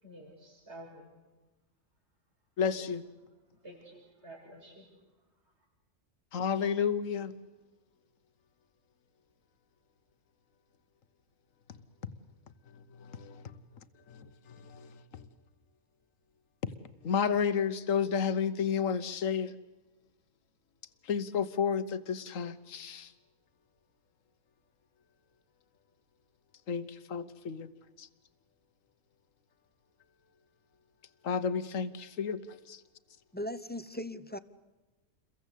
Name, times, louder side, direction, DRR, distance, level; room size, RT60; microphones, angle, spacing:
voice 1, 0.0-1.2 2.7-2.8 3.6-4.9 5.5-5.6, right 1 dB, 55° right, -1 dB, 6.4 m, -50 dB
voice 2, 2.6-3.0 6.3-7.3 13.0-13.4 14.1-14.9 15.1-15.2 17.0-19.5 21.1-23.1 26.7-27.7 28.0-28.1 31.2-32.4 32.7-32.8, left 7 dB, 80° left, 12 dB, 1.5 m, -31 dB
voice 3, 33.3-34.4, left 1 dB, 10° left, 12 dB, 0.7 m, -38 dB
29.0 x 22.5 x 8.3 m, 1.2 s
omnidirectional pair, 1.3 m